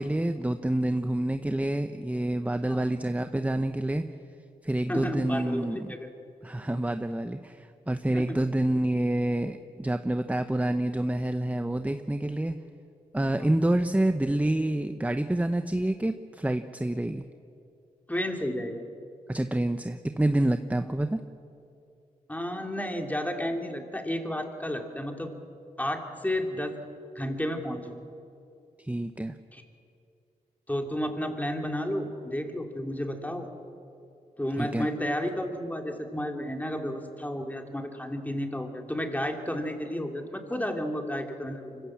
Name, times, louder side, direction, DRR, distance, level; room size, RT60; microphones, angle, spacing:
voice 1, 0.0-4.0 4.6-5.9 6.4-12.5 13.1-17.2 19.3-21.2 28.8-29.4 34.6-34.9, right 1 dB, 10° right, 9 dB, 0.9 m, -27 dB
voice 2, 4.9-6.1 8.1-8.4 13.4-13.5 18.1-18.8 20.8-20.9 22.3-25.3 25.8-26.8 27.1-27.9 29.5-29.6 30.7-33.5 34.4-41.8, equal, 10° left, 3 dB, 3.0 m, -32 dB
24.5 x 16.0 x 7.5 m, 2.6 s
cardioid pair, 45°, 16 cm